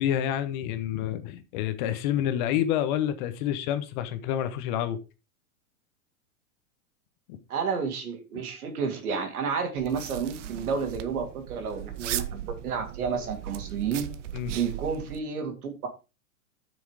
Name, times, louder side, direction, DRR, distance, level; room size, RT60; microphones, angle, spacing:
voice 1, 0.0-5.0 14.3-14.5, left 11 dB, 35° left, 1.0 m, -28 dB
voice 2, 7.5-14.1 14.5-15.9, right 6 dB, 85° right, 3.0 m, -31 dB
sound 1, 9.8-15.2, right 11 dB, 55° right, 0.9 m, -37 dB
8.2 x 6.4 x 4.9 m
supercardioid pair, 160°, 43 cm